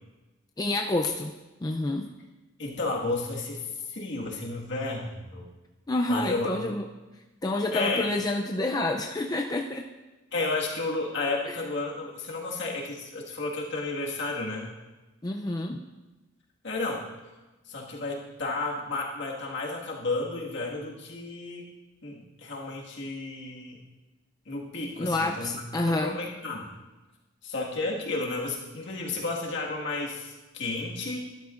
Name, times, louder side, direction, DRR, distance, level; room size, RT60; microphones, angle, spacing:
voice 1, 0.6-1.3 1.6-2.1 5.9-6.8 7.4-9.8 15.2-15.8 25.0-26.2, left 2 dB, 20° left, 2 dB, 0.4 m, -28 dB
voice 2, 2.6-5.5 6.1-6.6 7.7-8.1 10.3-14.7 16.6-17.0 17.7-21.7 22.0-23.8 24.5-26.7 27.4-31.2, left 3 dB, 60° left, -2 dB, 1.8 m, -32 dB
12.5 x 12.0 x 2.5 m, 1.1 s
head